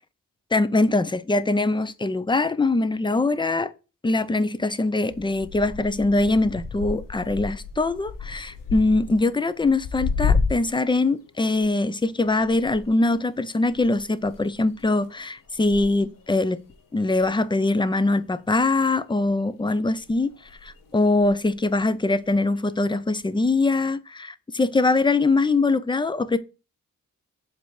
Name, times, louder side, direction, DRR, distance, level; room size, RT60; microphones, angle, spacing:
voice 1, 0.5-3.7 4.0-16.6 16.9-20.3 20.6-26.4, left 2 dB, 15° left, 0.5 m, -22 dB
sound 1, 5.1-10.9 11.2-18.3 18.5-19.3 20.0-21.8 22.3-22.7 23.4-23.5, left 5 dB, 85° left, 1.1 m, -32 dB
7.6 x 3.4 x 4.8 m
wide cardioid pair, 120°, 32 cm